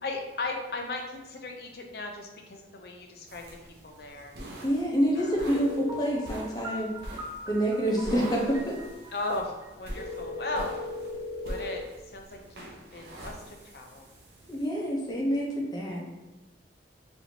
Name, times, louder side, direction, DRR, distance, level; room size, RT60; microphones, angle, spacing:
voice 1, 0.0-3.4 3.8-4.4 5.2-5.7 7.7-7.8 9.1-10.8 11.4-11.9 12.1-14.1, left 2 dB, 60° left, 2 dB, 0.6 m, -37 dB
sound 1, 3.3-14.7, right 1 dB, 70° right, 0.7 m, -44 dB
voice 2, 4.6-6.9 7.5-8.8 14.5-16.0, equal, 25° left, -2 dB, 0.7 m, -27 dB
sound 2, 5.5-6.0 10.0-11.8, left 2 dB, 90° left, 0.9 m, -37 dB
Piano, 5.9-10.7, equal, 15° right, 0.3 m, -44 dB
4.4 x 2.7 x 2.7 m, 1.1 s
head